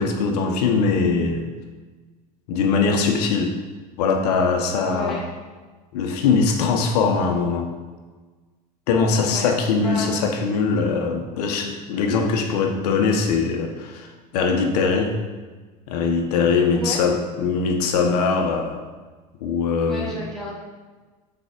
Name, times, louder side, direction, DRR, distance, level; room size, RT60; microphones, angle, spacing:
voice 1, 0.0-1.5 2.5-3.6 4.0-5.2 5.9-7.7 8.9-14.1 14.3-15.2 15.9-18.8 19.4-20.2, left 5 dB, 75° left, 4 dB, 1.2 m, -21 dB
voice 2, 4.8-5.3 9.2-10.1 16.8-17.0 19.8-20.6, equal, ahead, -7 dB, 2.0 m, -32 dB
6.1 x 4.7 x 5.3 m, 1.3 s
hypercardioid pair, 95°, 21 cm